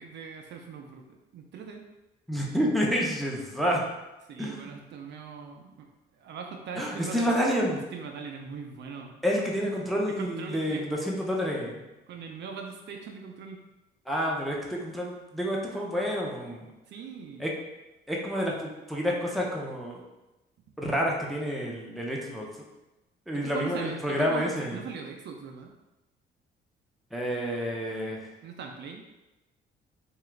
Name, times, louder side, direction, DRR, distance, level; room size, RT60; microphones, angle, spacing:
voice 1, 0.0-1.9 4.3-5.9 6.2-7.3 7.9-9.2 10.1-10.9 12.1-13.6 16.9-17.5 23.3-25.7 28.4-29.0, right 5 dB, 65° right, 3 dB, 0.4 m, -40 dB
voice 2, 2.3-3.8 4.4-4.7 6.8-7.8 9.2-11.8 14.1-16.7 17.4-17.5 18.1-20.0 20.8-22.5 23.3-24.8 27.1-28.3, equal, ahead, -3 dB, 0.6 m, -29 dB
2.8 x 2.3 x 3.2 m, 1.0 s
cardioid pair, 90°, 20 cm